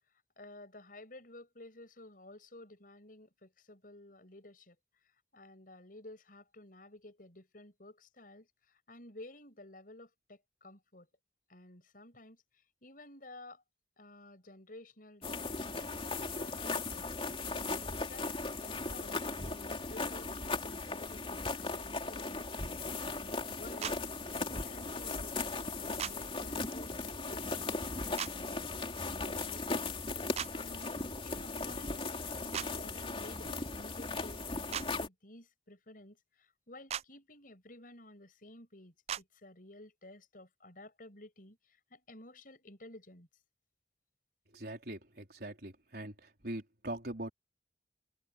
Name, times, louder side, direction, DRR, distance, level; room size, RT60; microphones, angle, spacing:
voice 1, 0.4-4.8 5.3-11.1 11.5-12.4 12.8-13.6 14.0-15.9 16.4-17.1 17.6-18.3 18.6-23.2 23.6-24.0 24.2-25.4 25.8-29.9 30.5-32.2 32.4-41.6 41.9-43.3, left 1 dB, 50° left, 7.7 m, -53 dB
sound 1, 15.2-35.1, left 3 dB, 30° left, 3.1 m, -38 dB
sound 2, 23.8-24.0 26.0-26.1 28.2-28.3 30.3-30.5 32.5-32.7 34.7-34.9 36.9-37.0 39.1-39.2, right 9 dB, 35° right, 0.3 m, -36 dB
voice 2, 44.5-46.1 46.4-47.3, right 1 dB, 60° right, 4.5 m, -41 dB
head